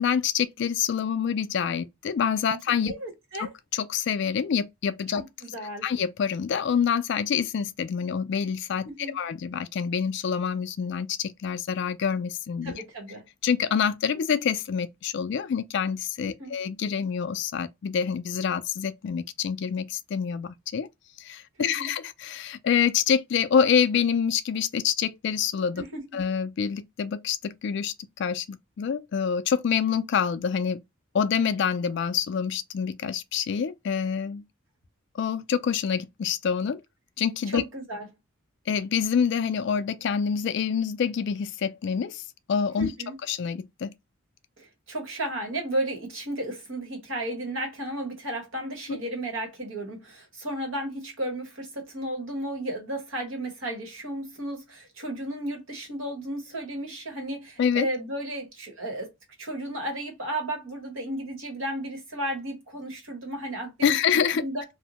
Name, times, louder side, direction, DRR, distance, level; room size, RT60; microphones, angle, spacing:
voice 1, 0.0-2.9 3.4-5.2 5.8-8.9 9.1-12.7 13.4-20.9 21.2-25.8 26.1-27.9 28.2-30.8 31.1-34.4 35.2-36.8 37.2-37.6 38.7-42.2 42.5-42.9 43.3-43.9 48.9-49.0 57.6-57.9 63.8-64.4, left 7 dB, 55° left, 0.3 m, -26 dB
voice 2, 2.9-3.5 5.1-5.9 8.8-9.2 12.6-13.2 16.4-16.6 21.6-21.9 25.7-26.2 37.5-38.1 42.8-43.2 44.6-59.1 59.4-64.0 64.3-64.6, right 1 dB, 70° right, 1.1 m, -34 dB
2.6 x 2.0 x 2.8 m
head